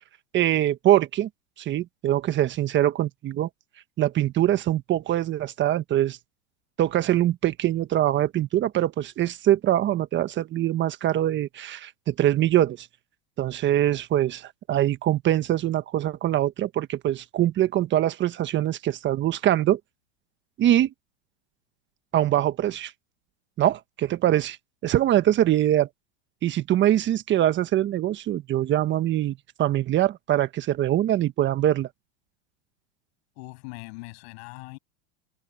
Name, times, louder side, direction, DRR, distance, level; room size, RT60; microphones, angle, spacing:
voice 1, 0.3-1.3 1.6-3.5 4.0-6.2 6.8-12.9 13.4-19.8 20.6-20.9 22.1-22.9 23.6-24.6 24.8-25.9 26.4-31.9, right 12 dB, 30° right, 1.4 m, -23 dB
voice 2, 33.4-34.8, left 27 dB, 60° left, 7.7 m, -41 dB
hypercardioid pair, 120°, 35 cm